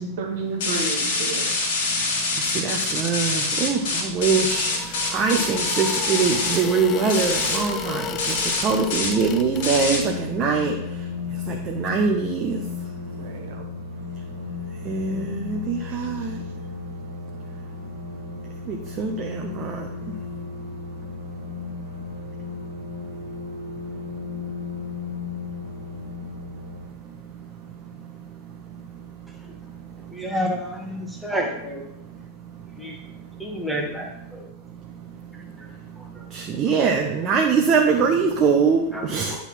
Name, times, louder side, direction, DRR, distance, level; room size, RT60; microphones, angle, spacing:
voice 1, 0.0-1.5 5.3-5.4 13.1-13.7 15.9-16.1, right 3 dB, 55° right, 1 dB, 1.4 m, -32 dB
sound 1, 0.6-6.6 7.1-7.6 8.2-8.6 8.9-9.1 9.6-10.0, left 3 dB, 50° left, 2.0 m, -25 dB
voice 2, 1.9-30.3 31.0-31.3 31.9-33.7 34.3-39.4, right 5 dB, 30° right, 1 dB, 0.9 m, -27 dB
sound 2, 3.8-10.3, left 8 dB, 30° left, 0.5 m, -34 dB
sound 3, 8.9-26.9, left 6 dB, 80° left, 1.0 m, -35 dB
voice 3, 30.1-31.9 32.7-33.0 33.4-34.5 35.3-35.7 36.0-36.3 37.3-37.4 38.9-39.4, equal, ahead, 0 dB, 1.4 m, -31 dB
9.8 x 4.2 x 4.4 m, 0.83 s
figure-of-eight pair, 90°, 0 cm